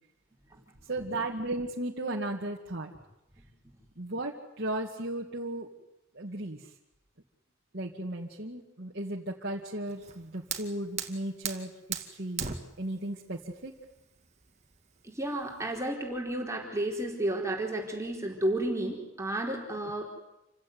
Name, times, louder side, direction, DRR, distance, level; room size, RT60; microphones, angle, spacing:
voice 1, 0.9-2.9 4.0-5.7 6.1-6.6 7.7-12.5 12.8-13.7 19.8-19.9, right 1 dB, 50° right, -3 dB, 2.3 m, -35 dB
Fire, 9.9-15.8, right 7 dB, 35° right, 2.3 m, -40 dB
voice 2, 15.0-20.0, right 1 dB, 15° right, 0 dB, 4.5 m, -32 dB
28.5 x 16.5 x 9.6 m, 0.91 s
head